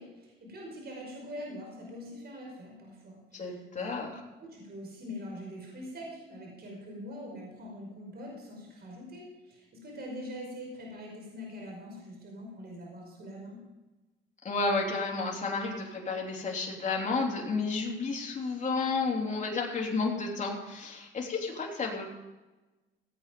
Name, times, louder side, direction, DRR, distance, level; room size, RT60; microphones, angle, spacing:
voice 1, 0.0-4.1 4.4-13.6, equal, 55° right, -1 dB, 5.4 m, -43 dB
voice 2, 3.3-4.1 14.4-22.1, left 4 dB, 40° left, -1 dB, 3.3 m, -31 dB
17.0 x 8.8 x 5.2 m, 1.1 s
cardioid pair, 90°, 20 cm